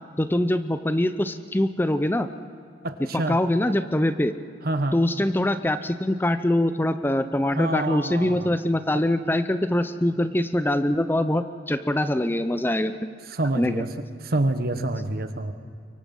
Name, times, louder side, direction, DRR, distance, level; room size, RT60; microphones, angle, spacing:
voice 1, 0.2-2.3 3.1-4.3 4.9-12.9 13.5-13.8, left 1 dB, 10° left, 11 dB, 0.6 m, -23 dB
voice 2, 2.8-3.4 4.6-4.9 7.6-8.5 13.3-13.9 14.3-15.5, right 2 dB, 55° right, 9 dB, 1.2 m, -27 dB
24.0 x 23.5 x 5.5 m, 2.4 s
head